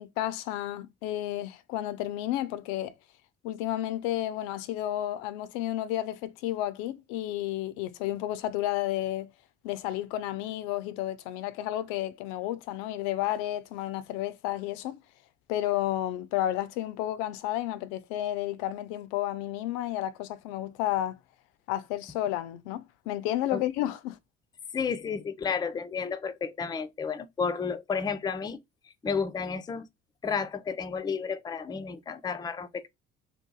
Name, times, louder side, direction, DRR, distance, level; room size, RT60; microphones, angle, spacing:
voice 1, 0.0-2.9 3.4-9.3 9.6-15.0 15.5-21.2 21.7-24.2, left 13 dB, 75° left, 0.5 m, -31 dB
voice 2, 24.7-28.6 28.8-29.9 30.2-32.9, left 5 dB, 15° left, 0.4 m, -32 dB
2.8 x 2.3 x 3.7 m
hypercardioid pair, 55°, 33 cm